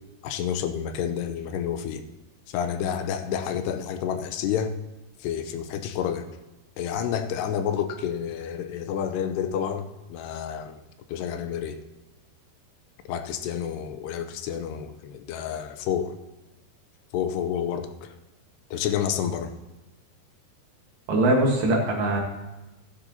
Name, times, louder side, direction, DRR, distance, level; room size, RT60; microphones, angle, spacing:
voice 1, 0.2-2.0 2.5-4.8 5.2-6.2 6.8-10.8 11.1-11.8 13.1-16.1 17.1-18.1 18.7-19.5, left 8 dB, 90° left, 9 dB, 2.8 m, -29 dB
voice 2, 21.1-22.2, right 1 dB, 60° right, 0 dB, 2.8 m, -21 dB
15.5 x 9.9 x 2.8 m, 1.0 s
omnidirectional pair, 4.7 m